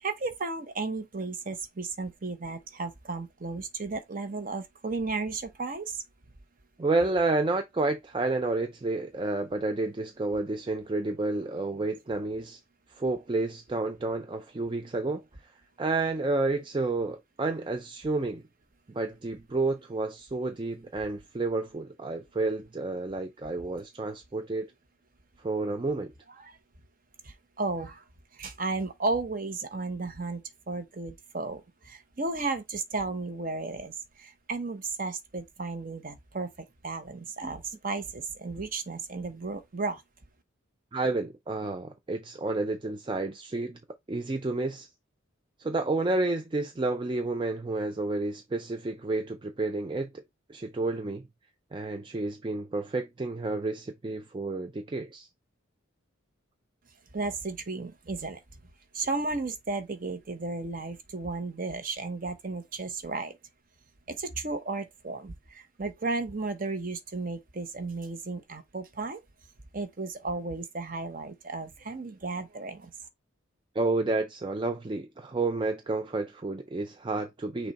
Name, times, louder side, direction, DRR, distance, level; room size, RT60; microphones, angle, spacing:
voice 1, 0.0-6.0 26.4-26.6 27.2-28.0 28.4-30.4 30.7-33.9 34.2-40.0 57.1-58.4 58.9-63.4 64.1-69.2 69.7-72.9, right 3 dB, 40° right, 0.8 m, -34 dB
voice 2, 6.8-12.6 12.9-15.5 15.8-18.4 18.9-24.7 25.4-26.1 37.4-37.5 40.9-43.8 44.1-44.9 45.6-50.1 50.5-51.3 51.7-55.3 73.7-77.7, right 2 dB, 25° right, 0.4 m, -30 dB
6.0 x 2.2 x 4.0 m
head